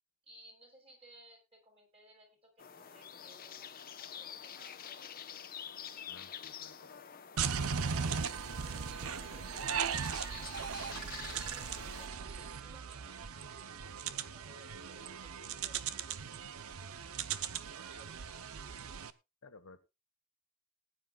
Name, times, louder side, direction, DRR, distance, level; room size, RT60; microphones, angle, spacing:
voice 1, 0.2-5.2 8.5-13.2 14.0-15.9 17.6-18.6, right 1 dB, 25° right, 2 dB, 5.7 m, -60 dB
sound 1, 2.6-12.1, left 8 dB, 45° left, 1.0 m, -48 dB
voice 2, 6.1-7.0 19.4-19.8, left 3 dB, 85° left, 8 dB, 1.4 m, -56 dB
sound 2, 7.4-19.1, right 7 dB, 75° right, 0.8 m, -38 dB
19.0 x 9.8 x 2.4 m, 0.25 s
head